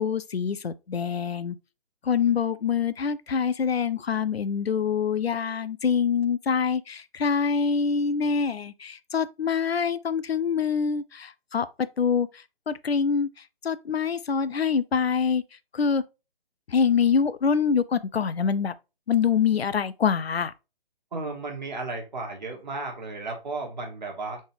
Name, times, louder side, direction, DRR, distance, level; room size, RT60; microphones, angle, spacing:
voice 1, 0.0-1.6 2.0-13.3 13.6-15.4 15.7-16.0 16.7-18.7 19.1-20.5, left 6 dB, 80° left, 0.5 m, -25 dB
voice 2, 21.1-24.4, right 3 dB, 45° right, 1.5 m, -34 dB
4.2 x 3.4 x 3.0 m
figure-of-eight pair, 145°, 30 cm